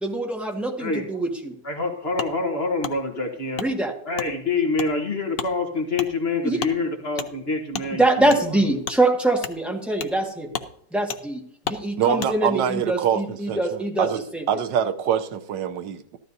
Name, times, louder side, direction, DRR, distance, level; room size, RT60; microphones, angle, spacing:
voice 1, 0.0-1.5 3.6-3.9 6.4-6.6 7.9-10.5 10.9-14.5, right 2 dB, ahead, 1.5 m, -24 dB
voice 2, 1.6-3.6 4.0-8.4, left 3 dB, 40° left, 1.3 m, -26 dB
Wood, 2.2-2.3 2.8-2.9 3.5-3.7 4.1-4.3 4.7-4.9 5.3-5.5 5.9-6.1 6.6-6.7 7.2-7.3 7.7-7.9 8.3-8.4 8.8-9.0 9.4-9.6 10.0-10.2 10.5-10.7 11.1-11.2 11.6-11.8 12.2-12.3, left 7 dB, 65° left, 0.6 m, -31 dB
voice 3, 12.0-14.2 14.5-16.2, right 9 dB, 85° right, 1.4 m, -25 dB
14.0 x 12.0 x 2.7 m
omnidirectional pair, 1.9 m